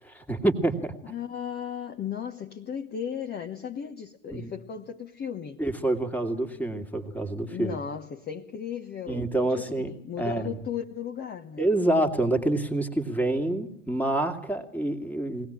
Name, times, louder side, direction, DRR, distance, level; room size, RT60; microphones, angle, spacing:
voice 1, 0.0-0.9 4.3-4.5 5.6-7.8 9.1-10.6 11.6-15.5, right 1 dB, 5° left, 2.3 m, -27 dB
voice 2, 1.1-5.6 7.5-11.6, left 8 dB, 25° left, 1.3 m, -36 dB
22.0 x 18.5 x 8.9 m
figure-of-eight pair, 85°, 38 cm